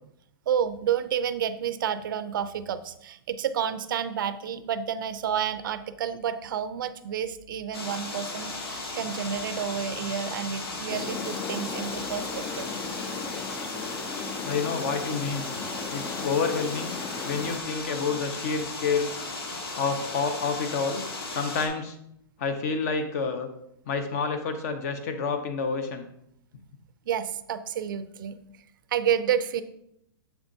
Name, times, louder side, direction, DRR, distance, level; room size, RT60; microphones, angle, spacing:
voice 1, 0.5-12.7 15.8-15.9 27.1-28.4 28.9-29.6, right 8 dB, 60° right, 12 dB, 0.5 m, -30 dB
sound 1, 7.7-21.7, left 3 dB, 85° left, 1.5 m, -36 dB
sound 2, 10.9-17.6, left 4 dB, 10° left, 0.3 m, -37 dB
voice 2, 14.4-15.5 15.9-17.0 17.2-19.1 19.8-21.0 21.3-22.0 22.4-23.5 23.9-26.1, left 5 dB, 40° left, 8 dB, 0.9 m, -28 dB
7.2 x 7.0 x 2.7 m, 0.75 s
hypercardioid pair, 160°, 13 cm